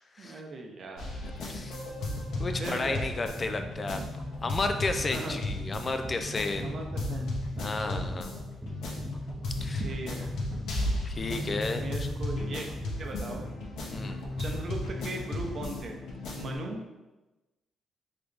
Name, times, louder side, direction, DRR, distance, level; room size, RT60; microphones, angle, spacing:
voice 1, 0.2-1.1 2.6-3.1 5.1-5.4 6.6-7.3 7.6-8.1 9.8-10.3 11.7-12.7 13.0-13.5 14.4-15.9 16.3-16.8, right 3 dB, 50° right, 2 dB, 0.7 m, -38 dB
sound 1, 1.0-16.5, left 1 dB, 80° left, 0.9 m, -35 dB
voice 2, 1.4-1.8 2.4-4.0 4.4-6.8 7.6-8.3 9.6-9.8 11.1-12.1 13.9-14.2, left 3 dB, 35° left, 7 dB, 0.3 m, -32 dB
sound 2, 2.3-15.0, equal, 15° right, 0.6 m, -43 dB
3.9 x 3.2 x 3.4 m, 1.1 s
cardioid pair, 90°, 0 cm